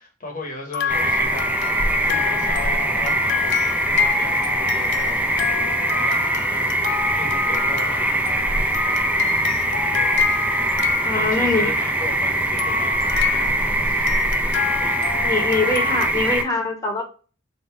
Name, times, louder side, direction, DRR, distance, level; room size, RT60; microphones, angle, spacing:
voice 1, 0.0-9.5 9.9-10.4 11.1-14.1, left 2 dB, 45° left, 0.9 m, -38 dB
sound 1, 0.7-11.8 12.6-16.1, left 7 dB, 65° left, 0.4 m, -28 dB
sound 2, 0.9-16.4, right 1 dB, 5° right, 0.4 m, -22 dB
voice 2, 11.0-11.9 15.2-17.0, left 3 dB, 20° left, 0.9 m, -23 dB
3.6 x 2.7 x 4.3 m
head